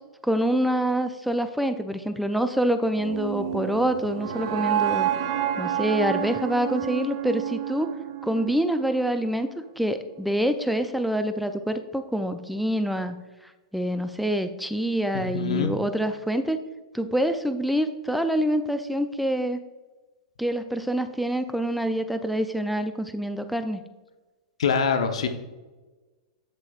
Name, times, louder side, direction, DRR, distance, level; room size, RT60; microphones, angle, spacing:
voice 1, 0.2-5.1 5.6-7.9 8.2-9.5 9.8-13.2 13.7-16.6 16.9-19.6 20.4-23.8, right 1 dB, ahead, 8 dB, 0.4 m, -26 dB
sound 1, 3.0-9.1, right 11 dB, 55° right, 0.6 m, -29 dB
voice 2, 15.1-15.7 24.6-25.3, left 6 dB, 70° left, 7 dB, 0.9 m, -24 dB
8.0 x 7.9 x 2.4 m, 1.2 s
hypercardioid pair, 110°, 3 cm